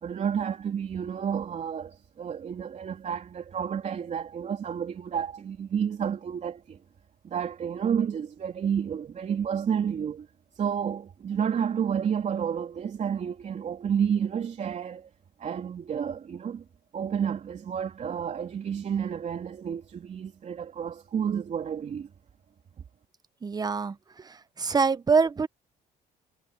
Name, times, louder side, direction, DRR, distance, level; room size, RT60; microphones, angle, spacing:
voice 1, 0.0-6.8 7.2-10.3 10.6-15.1 15.4-16.6 16.9-22.1, right 8 dB, 45° right, 3.5 m, -30 dB
voice 2, 23.4-23.9 24.6-25.5, right 5 dB, 25° right, 0.8 m, -24 dB
cardioid pair, 110°, 17 cm